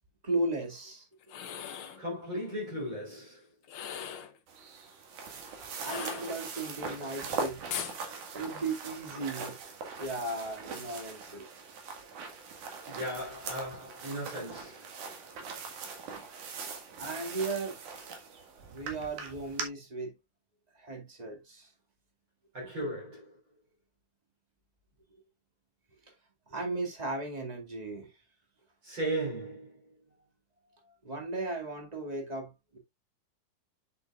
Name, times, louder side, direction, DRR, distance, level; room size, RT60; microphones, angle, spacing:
voice 1, 0.2-1.1 5.8-7.6 8.3-9.5 10.0-11.5 17.0-18.1 18.7-20.2 20.7-21.7 26.5-28.1 31.0-32.8, right 2 dB, 15° right, 1.4 m, -36 dB
sound 1, 1.2-2.0 3.6-4.4 5.8-6.7 7.7-8.0, left 8 dB, 90° left, 1.1 m, -39 dB
voice 2, 2.0-3.5 12.9-14.9 22.5-23.3 28.8-29.9, right 1 dB, 35° right, 4.1 m, -36 dB
sound 2, 4.5-19.6, right 5 dB, 65° right, 3.1 m, -41 dB
9.1 x 7.0 x 2.4 m
omnidirectional pair, 4.0 m